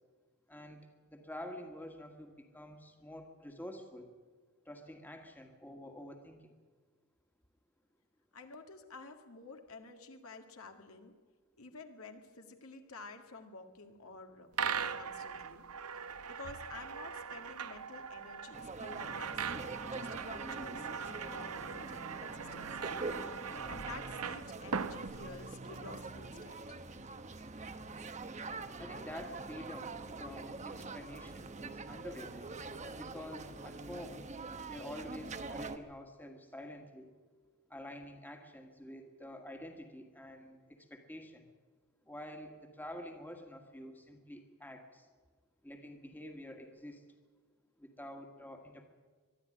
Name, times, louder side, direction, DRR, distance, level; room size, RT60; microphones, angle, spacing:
voice 1, 0.5-4.1 4.7-6.5 28.8-32.5 32.9-34.2 34.7-37.1 37.7-41.5 42.1-45.1 45.6-47.0 47.8-48.8, left 1 dB, 10° left, 4 dB, 1.8 m, -48 dB
voice 2, 8.3-11.1 11.6-15.7 15.9-23.0 23.4-26.8, left 3 dB, 70° left, 5 dB, 2.0 m, -51 dB
sound 1, 14.5-25.8, right 6 dB, 80° right, 0.8 m, -40 dB
sound 2, 18.5-35.8, right 3 dB, 30° right, 1.0 m, -44 dB
23.0 x 12.0 x 9.9 m, 1.5 s
head